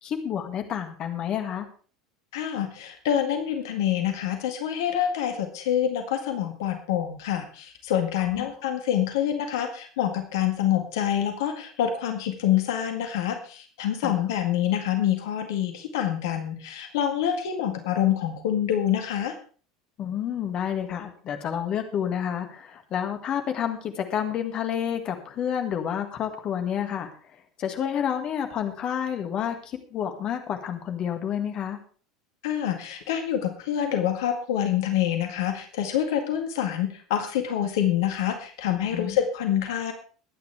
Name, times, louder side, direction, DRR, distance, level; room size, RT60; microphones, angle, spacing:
voice 1, 0.0-1.7 8.2-8.5 14.0-14.2 20.0-27.1 27.6-31.8 38.9-39.2, left 9 dB, 40° left, 6 dB, 2.0 m, -29 dB
voice 2, 2.3-19.3 32.4-39.9, left 10 dB, 65° left, 6 dB, 1.8 m, -26 dB
22.0 x 9.3 x 3.4 m, 0.40 s
figure-of-eight pair, 75°, 2 cm